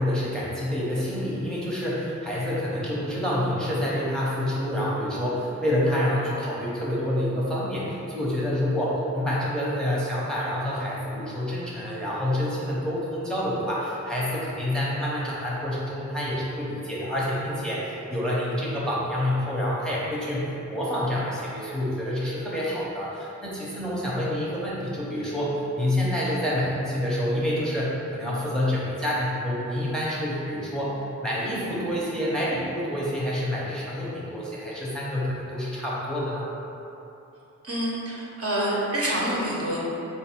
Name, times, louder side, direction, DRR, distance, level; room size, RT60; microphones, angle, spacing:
voice 1, 0.0-36.5, left 1 dB, ahead, -7 dB, 0.7 m, -27 dB
voice 2, 37.6-39.8, right 1 dB, 50° right, -5 dB, 0.9 m, -27 dB
3.9 x 2.6 x 4.3 m, 2.9 s
wide cardioid pair, 105°, 30 cm